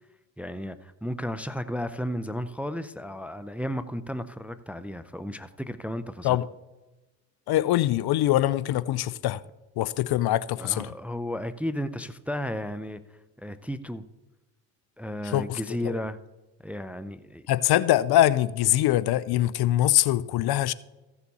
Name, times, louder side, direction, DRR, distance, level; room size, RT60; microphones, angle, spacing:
voice 1, 0.4-6.4 10.6-14.0 15.0-16.2 16.6-17.4, equal, 5° right, 0.5 m, -34 dB
voice 2, 7.5-9.4 9.8-10.9 15.3-15.9 17.5-20.7, left 14 dB, 55° left, 0.5 m, -23 dB
15.0 x 7.1 x 4.2 m
supercardioid pair, 75°, 48 cm